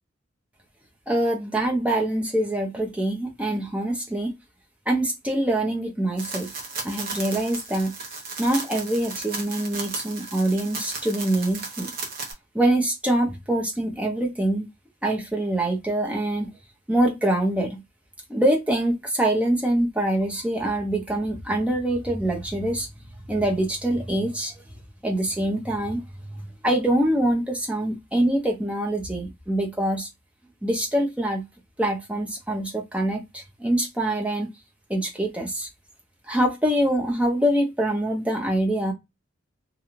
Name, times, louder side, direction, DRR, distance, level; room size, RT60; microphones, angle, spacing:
voice 1, 1.1-4.3 4.9-6.5 6.8-7.9 8.4-11.9 12.5-14.7 15.0-16.5 16.9-17.8 18.3-22.9 23.3-24.5 25.0-26.0 26.3-30.1 30.6-31.4 31.8-34.5 34.9-35.7 36.3-38.9, right 1 dB, 5° right, 0.5 m, -24 dB
sound 1, 6.2-12.3, right 4 dB, 45° right, 0.7 m, -35 dB
2.4 x 2.2 x 2.9 m
head